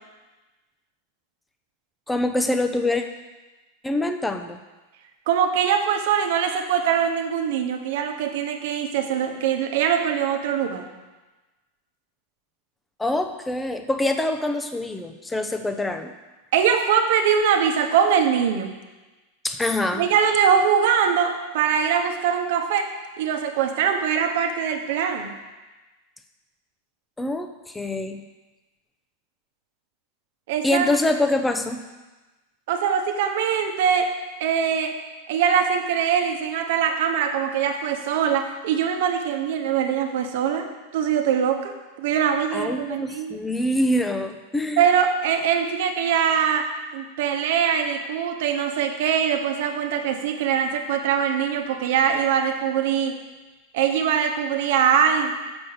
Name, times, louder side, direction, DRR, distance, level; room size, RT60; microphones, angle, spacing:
voice 1, 2.1-3.1 3.8-4.6 13.0-16.1 19.4-20.1 27.2-28.2 30.6-31.8 42.5-44.9, left 1 dB, 10° left, 6 dB, 0.8 m, -25 dB
voice 2, 5.3-10.9 16.5-18.7 19.9-22.9 23.2-25.3 30.5-30.9 32.7-34.1 34.4-34.9 35.3-40.7 40.9-43.4 44.8-53.2 53.7-55.3, right 7 dB, 65° right, 5 dB, 1.0 m, -22 dB
7.1 x 5.4 x 6.7 m, 1.2 s
hypercardioid pair, 95°, 0 cm